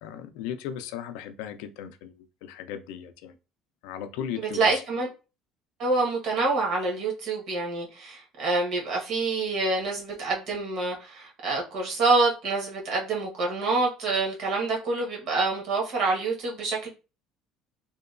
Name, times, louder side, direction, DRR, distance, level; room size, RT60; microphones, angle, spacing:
voice 1, 0.0-2.1 2.4-3.3 3.8-4.8, left 9 dB, 85° left, 0.3 m, -36 dB
voice 2, 4.4-5.1 5.8-16.9, right 3 dB, 50° right, 1.0 m, -26 dB
2.8 x 2.2 x 2.3 m
cardioid pair, 170°, 0 cm